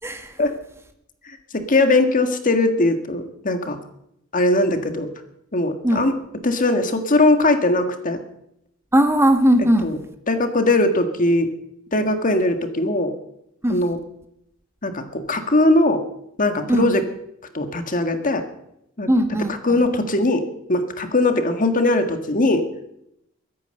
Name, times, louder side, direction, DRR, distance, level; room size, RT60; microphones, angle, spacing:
voice 1, 1.5-3.8 4.3-5.1 5.5-6.1 6.4-8.2 9.8-10.0 10.3-11.5 11.9-13.1 13.7-14.0 14.8-16.0 16.4-17.0 17.5-18.4 19.0-19.1 19.5-22.7, left 2 dB, 40° left, 7 dB, 1.7 m, -20 dB
voice 2, 8.9-9.9 13.6-13.8 16.7-16.9 19.1-19.5, equal, 15° right, 6 dB, 1.5 m, -18 dB
22.5 x 9.5 x 6.6 m, 0.78 s
head